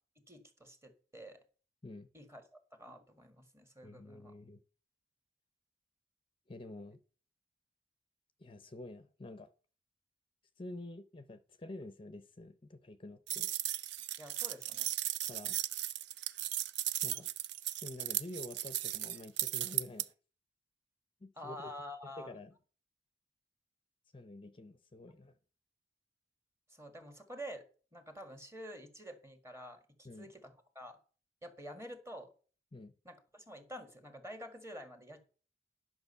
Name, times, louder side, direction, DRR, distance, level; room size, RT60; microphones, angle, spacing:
voice 1, 0.3-1.4 2.1-2.4 2.7-4.3 14.2-14.9 21.4-22.4 26.7-27.6 27.9-31.0 31.4-32.3 33.0-35.2, equal, 15° right, 1.7 m, -48 dB
voice 2, 3.8-4.6 6.5-7.0 8.4-9.5 10.6-13.5 15.2-15.6 17.0-17.3 17.8-20.1 21.2-21.7 22.2-22.5 24.1-25.4 30.0-30.3 32.7-32.9, left 2 dB, 30° left, 0.6 m, -48 dB
sound 1, 13.3-20.1, right 13 dB, 70° right, 0.5 m, -36 dB
10.5 x 6.1 x 5.5 m
head